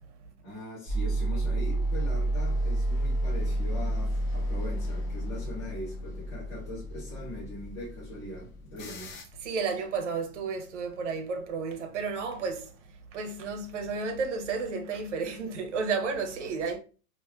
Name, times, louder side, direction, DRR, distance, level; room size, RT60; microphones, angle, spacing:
voice 1, 0.4-9.1, left 1 dB, 15° left, 1.2 m, -41 dB
sound 1, 0.9-9.0, right 1 dB, 35° left, 1.7 m, -30 dB
sound 2, 3.4-9.2, left 3 dB, 55° left, 1.1 m, -49 dB
voice 2, 9.4-16.8, right 4 dB, 50° right, 0.8 m, -32 dB
4.3 x 2.7 x 2.2 m
supercardioid pair, 180°, 47 cm